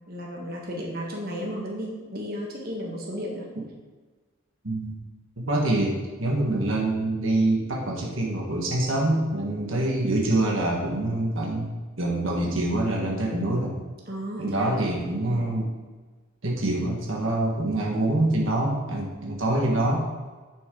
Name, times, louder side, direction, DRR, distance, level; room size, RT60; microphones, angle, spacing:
voice 1, 0.1-3.5 14.1-14.8 15.3-15.6, equal, 50° right, -1 dB, 1.6 m, -34 dB
voice 2, 5.4-11.7 12.0-13.8 14.4-15.7 16.4-20.0, right 1 dB, 75° right, -1 dB, 1.5 m, -25 dB
10.5 x 6.1 x 3.8 m, 1.4 s
head